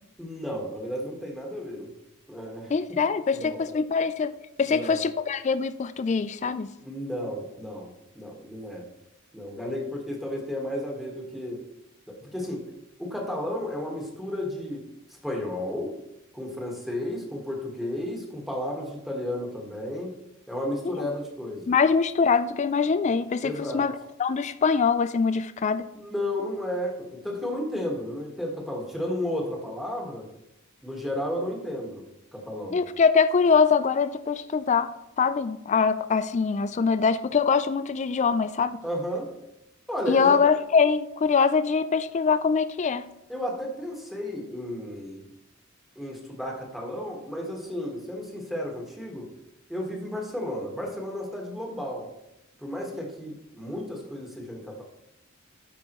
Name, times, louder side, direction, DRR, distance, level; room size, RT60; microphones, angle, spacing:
voice 1, 0.2-1.9 2.3-3.0 3.3-3.8 4.7-5.0 6.8-8.9 9.3-11.6 12.1-12.7 13.0-15.9 16.3-20.2 20.5-21.7 23.4-23.9 25.9-30.3 30.8-32.1 32.3-32.8 38.8-39.3 39.9-40.4 43.3-45.2 45.9-49.3 49.7-52.1 52.6-54.8, left 1 dB, ahead, -1 dB, 1.5 m, -33 dB
voice 2, 2.7-4.3 4.6-6.7 20.8-21.1 21.7-23.9 24.2-25.9 32.7-38.8 40.1-43.1, left 5 dB, 35° left, 13 dB, 0.3 m, -23 dB
13.0 x 5.3 x 3.0 m, 0.86 s
head